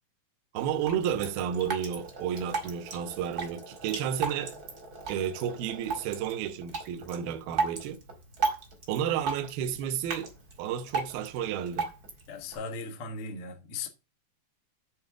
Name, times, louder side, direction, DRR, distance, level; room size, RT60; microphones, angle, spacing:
voice 1, 0.5-4.6 5.1-8.0 8.9-10.3 10.6-11.9, right 9 dB, 75° right, 2.4 m, -32 dB
Drip, 0.6-12.6, right 4 dB, 45° right, 1.2 m, -36 dB
voice 2, 12.3-13.9, left 4 dB, 60° left, 1.4 m, -37 dB
8.6 x 4.2 x 7.3 m
omnidirectional pair, 5.0 m